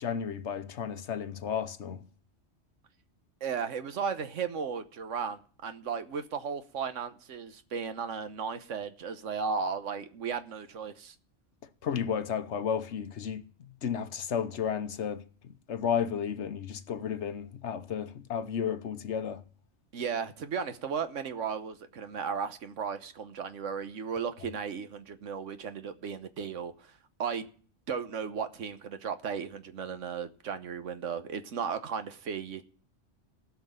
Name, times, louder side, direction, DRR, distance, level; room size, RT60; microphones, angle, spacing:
voice 1, 0.0-2.1 11.8-19.4, left 8 dB, 70° left, 1.2 m, -33 dB
voice 2, 3.4-11.1 19.9-26.9 27.2-27.5 27.9-32.6, right 6 dB, 85° right, 1.4 m, -35 dB
16.0 x 6.1 x 9.2 m
omnidirectional pair, 1.2 m